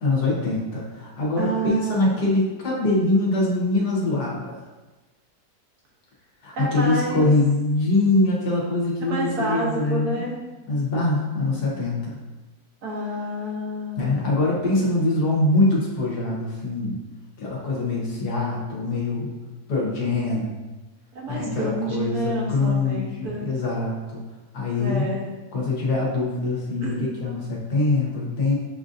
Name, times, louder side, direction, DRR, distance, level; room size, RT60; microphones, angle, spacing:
voice 1, 0.0-4.6 6.4-10.2 10.7-12.2 14.0-17.0 17.4-19.4 19.7-20.5 21.3-24.2 24.5-25.0 25.5-28.6, left 2 dB, 80° left, -4 dB, 1.7 m, -23 dB
voice 2, 1.4-2.2 6.5-7.3 9.0-10.4 12.8-14.3 21.1-23.5 24.8-25.4 26.8-27.1, right 1 dB, 80° right, -3 dB, 1.6 m, -29 dB
7.2 x 2.6 x 2.5 m, 1.2 s
omnidirectional pair, 1.6 m